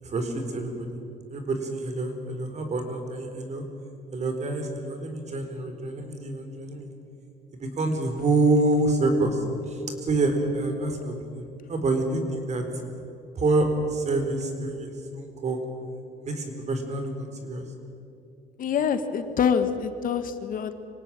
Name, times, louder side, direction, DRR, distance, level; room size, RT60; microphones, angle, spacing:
voice 1, 0.0-0.9 1.3-3.6 4.1-7.0 7.5-12.6 13.3-15.6 16.2-17.6, right 2 dB, 40° right, 5 dB, 4.5 m, -27 dB
voice 2, 18.6-20.7, left 7 dB, 55° left, 9 dB, 1.6 m, -25 dB
25.0 x 18.0 x 8.9 m, 2.6 s
cardioid pair, 110°, 17 cm